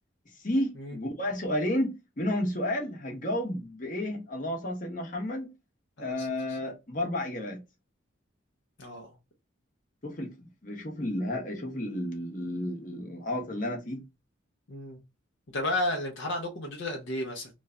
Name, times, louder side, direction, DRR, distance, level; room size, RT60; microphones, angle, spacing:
voice 1, 0.4-5.5 6.0-7.6 10.0-10.3 10.6-14.0, left 1 dB, 40° left, 0.9 m, -31 dB
voice 2, 6.0-6.7 8.8-9.1 14.7-15.0 15.5-17.5, left 1 dB, 65° left, 0.7 m, -33 dB
3.0 x 2.2 x 3.6 m
head